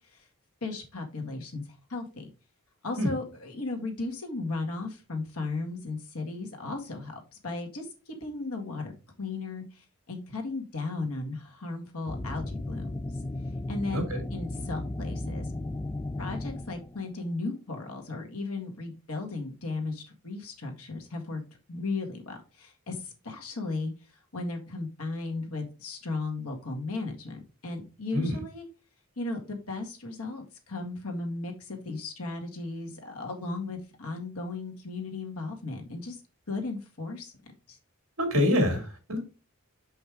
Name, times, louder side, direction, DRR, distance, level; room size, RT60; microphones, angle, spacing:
voice 1, 0.6-1.6 1.9-2.3 2.8-8.9 9.2-13.0 13.7-15.5 16.2-21.4 21.7-23.9 24.3-28.7 29.2-36.2 36.5-37.3 37.7-37.8, left 3 dB, 80° left, 2 dB, 1.9 m, -35 dB
sound 1, 12.1-17.1, left 2 dB, 15° left, 0.3 m, -35 dB
voice 2, 38.2-39.2, left 1 dB, 75° right, 4 dB, 2.5 m, -25 dB
6.3 x 5.5 x 3.5 m, 0.31 s
head